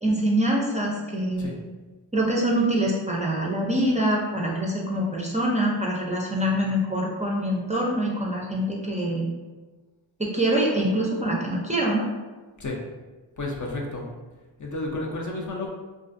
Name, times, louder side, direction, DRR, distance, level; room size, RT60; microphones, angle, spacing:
voice 1, 0.0-1.5 2.1-9.2 10.2-12.0, right 1 dB, 15° right, -3 dB, 0.4 m, -24 dB
voice 2, 13.4-14.1 14.6-15.7, left 2 dB, 45° left, -1 dB, 0.5 m, -31 dB
2.5 x 2.3 x 2.5 m, 1.3 s
cardioid pair, 45°, 45 cm